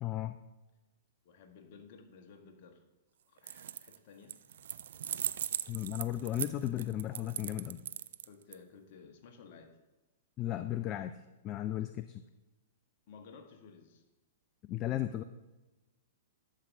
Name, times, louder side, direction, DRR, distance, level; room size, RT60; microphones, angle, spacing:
voice 1, 0.0-0.4 5.7-7.8 10.4-11.1 11.4-12.2 14.7-15.2, left 13 dB, 30° left, 11 dB, 0.3 m, -35 dB
voice 2, 1.2-2.8 3.3-4.4 8.2-9.7 13.1-14.0, left 5 dB, 50° left, 4 dB, 1.3 m, -55 dB
sound 1, 3.4-4.0 4.3-8.5, right 10 dB, 60° right, 0.3 m, -38 dB
11.0 x 7.4 x 2.7 m, 1.1 s
figure-of-eight pair, 110°, 0 cm